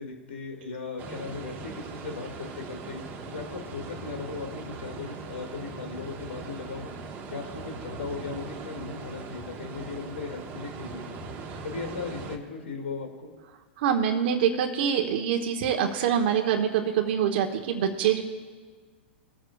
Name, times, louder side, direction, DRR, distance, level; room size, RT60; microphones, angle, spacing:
voice 1, 0.0-6.9 7.3-11.2 11.6-13.3, left 4 dB, 80° left, 3 dB, 2.1 m, -37 dB
sound 1, 1.0-12.4, right 4 dB, 30° right, 1.2 m, -40 dB
voice 2, 13.8-18.2, right 8 dB, 60° right, 4 dB, 1.0 m, -25 dB
22.5 x 7.8 x 2.3 m, 1.5 s
hypercardioid pair, 120°, 6 cm